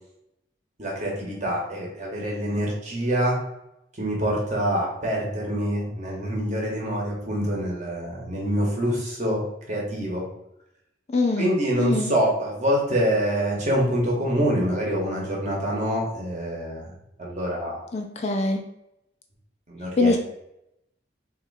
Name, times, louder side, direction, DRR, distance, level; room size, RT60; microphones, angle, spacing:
voice 1, 0.8-3.4 4.0-10.2 11.4-16.9 17.2-17.8 19.7-20.1, equal, 35° right, -2 dB, 1.1 m, -25 dB
voice 2, 11.1-11.5 11.8-12.1 17.9-18.7 20.0-20.2, left 2 dB, 35° left, 4 dB, 0.4 m, -23 dB
3.5 x 2.8 x 4.0 m, 0.83 s
head